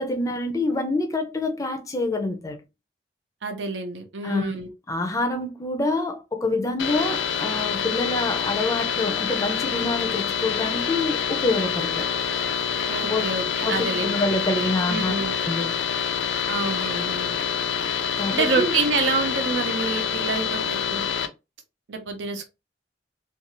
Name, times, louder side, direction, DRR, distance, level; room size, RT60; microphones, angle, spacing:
voice 1, 0.0-2.6 4.2-4.5 4.9-12.1 13.1-13.2 13.6-15.1 15.4-15.8 18.2-18.7, left 2 dB, 20° left, 0.5 m, -26 dB
voice 2, 3.4-4.7 12.9-14.2 14.5-15.4 16.5-17.3 18.3-21.0 21.9-22.5, right 4 dB, 80° right, 0.7 m, -27 dB
sound 1, 6.8-21.3, left 7 dB, 85° left, 0.5 m, -26 dB
2.5 x 2.4 x 2.9 m
head